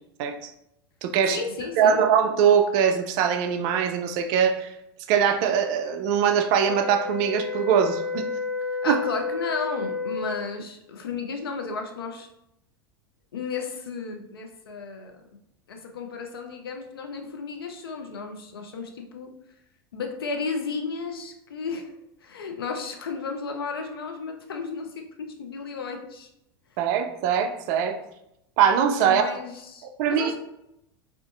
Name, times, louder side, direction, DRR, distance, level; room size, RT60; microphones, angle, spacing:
voice 1, 0.2-0.5 1.0-1.4 1.8-4.7 5.1-8.3 8.9-9.0 26.8-28.0 28.6-29.2 30.0-30.3, right 8 dB, 50° right, 6 dB, 0.3 m, -22 dB
voice 2, 1.3-2.0 8.8-12.3 13.3-15.4 15.7-19.3 19.9-26.3 29.0-30.4, left 4 dB, 75° left, 4 dB, 0.4 m, -34 dB
sound 1, 6.6-10.5, left 4 dB, 10° left, 1.1 m, -31 dB
2.5 x 2.4 x 2.3 m, 0.81 s
figure-of-eight pair, 85°, 12 cm